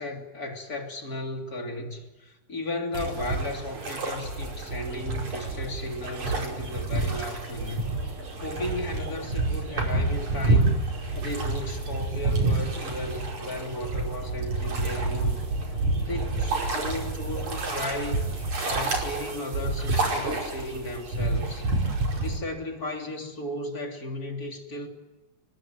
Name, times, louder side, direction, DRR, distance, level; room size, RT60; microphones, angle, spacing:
voice 1, 0.0-7.8 8.4-10.8 11.2-15.4 16.0-21.7 22.2-24.9, left 1 dB, 25° left, 3 dB, 3.4 m, -35 dB
sound 1, 2.9-22.4, right 2 dB, 45° right, 6.3 m, -28 dB
30.0 x 21.0 x 9.2 m, 1.1 s
omnidirectional pair, 4.6 m